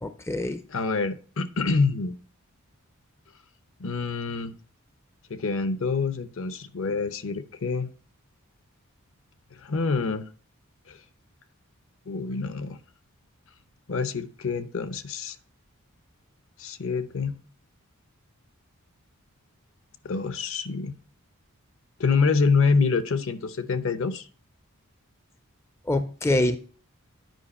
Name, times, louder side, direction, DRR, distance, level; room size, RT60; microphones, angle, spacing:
voice 1, 0.0-0.6 25.9-26.6, left 1 dB, 10° left, 9 dB, 0.3 m, -25 dB
voice 2, 0.7-2.2 3.8-4.5 5.3-7.9 9.6-10.2 10.9-11.0 12.1-12.8 13.9-15.4 16.6-17.4 20.0-20.9 22.0-24.3, left 4 dB, 60° left, 12 dB, 0.7 m, -26 dB
9.2 x 5.1 x 4.2 m, 0.41 s
head